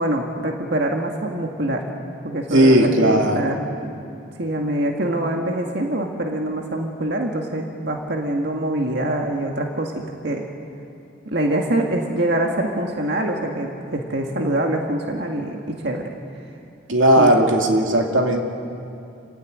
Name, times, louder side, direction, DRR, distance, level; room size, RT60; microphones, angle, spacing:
voice 1, 0.0-1.9 2.2-3.7 4.4-10.5 11.3-16.0 17.2-17.4, right 1 dB, 55° right, 1 dB, 1.9 m, -24 dB
voice 2, 2.5-3.4 16.9-18.4, right 1 dB, 85° right, 2 dB, 2.4 m, -16 dB
29.0 x 16.0 x 9.4 m, 2.7 s
head